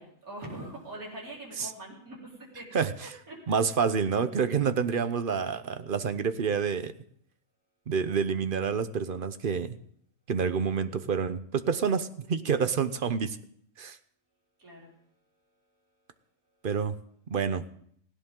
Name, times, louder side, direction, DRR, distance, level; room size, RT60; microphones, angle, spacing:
voice 1, 0.0-3.5 14.6-14.9, right 1 dB, 85° right, -3 dB, 4.7 m, -43 dB
voice 2, 2.7-3.2 3.5-6.9 7.9-9.7 10.3-13.4 13.8-14.0 16.6-17.0 17.3-17.6, right 6 dB, 45° right, 12 dB, 0.8 m, -28 dB
18.5 x 16.0 x 3.7 m, 0.64 s
omnidirectional pair, 1.5 m